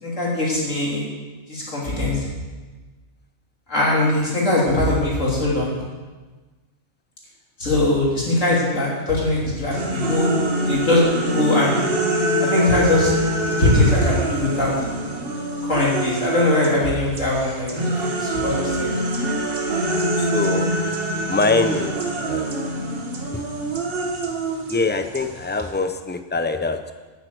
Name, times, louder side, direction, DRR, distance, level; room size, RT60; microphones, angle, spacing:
voice 1, 0.0-1.1 1.5-2.2 3.7-5.8 7.6-11.0 11.3-11.9 12.4-13.1 13.6-14.7 15.6-18.9, left 2 dB, 70° left, -5 dB, 3.5 m, -21 dB
sound 1, 9.7-16.8 17.1-25.7, right 1 dB, 45° right, 1.5 m, -25 dB
voice 2, 20.2-20.7 21.3-22.0 22.2-22.6 23.3-23.4 24.7-26.9, left 3 dB, 15° left, 8 dB, 0.4 m, -23 dB
9.6 x 8.7 x 7.9 m, 1.3 s
omnidirectional pair, 1.4 m